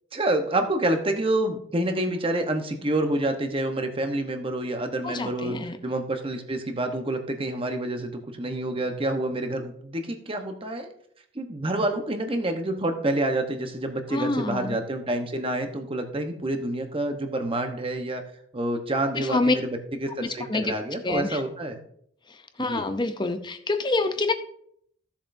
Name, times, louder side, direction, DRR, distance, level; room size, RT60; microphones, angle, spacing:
voice 1, 0.1-5.5 5.8-10.9 11.3-18.2 18.5-21.8 22.6-22.8, right 1 dB, 30° right, 5 dB, 1.0 m, -28 dB
voice 2, 5.0-5.8 14.1-14.8 19.2-19.5 20.2-20.7 21.0-21.4 22.6-24.3, left 3 dB, 25° left, 8 dB, 0.6 m, -26 dB
15.0 x 7.3 x 2.7 m, 0.68 s
head